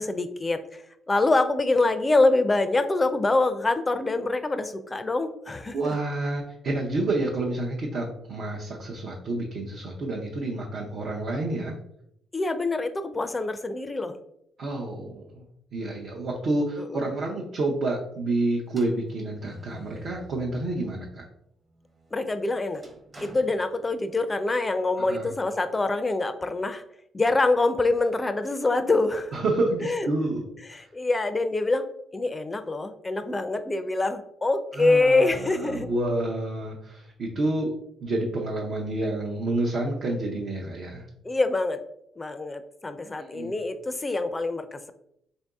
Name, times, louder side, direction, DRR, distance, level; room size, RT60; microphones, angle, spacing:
voice 1, 0.0-5.9 12.3-14.2 16.9-17.0 22.1-22.8 23.2-26.8 27.1-29.3 29.8-30.1 30.7-31.9 32.1-35.9 41.2-41.8 42.2-44.9, left 2 dB, 20° left, 10 dB, 0.4 m, -25 dB
voice 2, 5.7-11.8 14.6-15.4 15.7-21.2 25.1-25.3 29.3-30.8 34.7-37.7 38.0-41.1 43.2-43.5, right 2 dB, 65° right, -2 dB, 0.7 m, -29 dB
sound 1, 18.7-21.1 21.5-24.4, right 3 dB, 30° right, 0.9 m, -50 dB
3.8 x 2.6 x 3.5 m, 0.75 s
cardioid pair, 90°, 0 cm